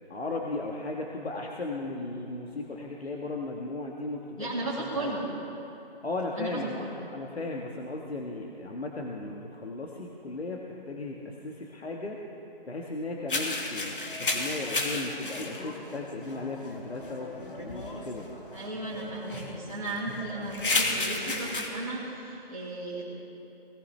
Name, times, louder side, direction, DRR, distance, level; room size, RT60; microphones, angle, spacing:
voice 1, 0.1-5.1 6.0-12.2 12.7-18.3, left 2 dB, 85° left, -1 dB, 1.6 m, -36 dB
voice 2, 4.4-5.3 6.4-6.9 18.5-23.0, right 2 dB, 5° left, -14 dB, 1.1 m, -35 dB
sound 1, 13.3-21.7, left 2 dB, 60° left, 1.9 m, -33 dB
20.5 x 17.5 x 3.3 m, 2.9 s
figure-of-eight pair, 175°, 31 cm